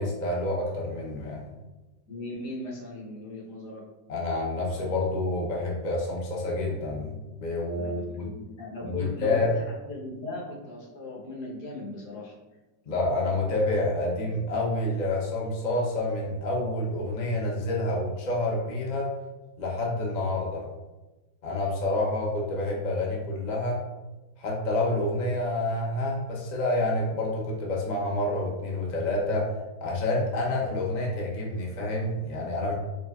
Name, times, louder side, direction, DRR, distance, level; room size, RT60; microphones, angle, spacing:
voice 1, 0.0-1.4 4.1-8.2 8.8-9.5 12.9-19.1 19.6-20.7 21.4-23.8 24.4-29.5 29.8-32.7, left 2 dB, 50° left, -3 dB, 0.5 m, -28 dB
voice 2, 2.1-3.8 7.8-12.3, left 2 dB, 70° left, -4 dB, 1.5 m, -38 dB
5.0 x 3.1 x 2.3 m, 1.1 s
omnidirectional pair, 1.8 m